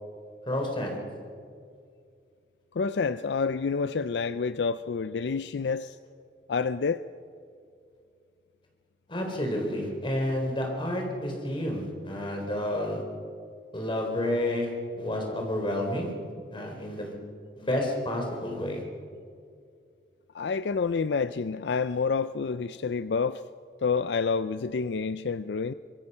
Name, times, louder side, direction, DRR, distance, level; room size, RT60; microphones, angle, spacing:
voice 1, 0.5-1.0 9.1-13.0 13.7-16.1 16.5-17.1 17.6-18.8, left 1 dB, 30° left, 3.8 m, -30 dB
voice 2, 2.7-6.0 6.5-7.0 20.3-23.4 23.8-25.7, left 5 dB, 75° left, 0.5 m, -28 dB
24.5 x 22.0 x 5.5 m
head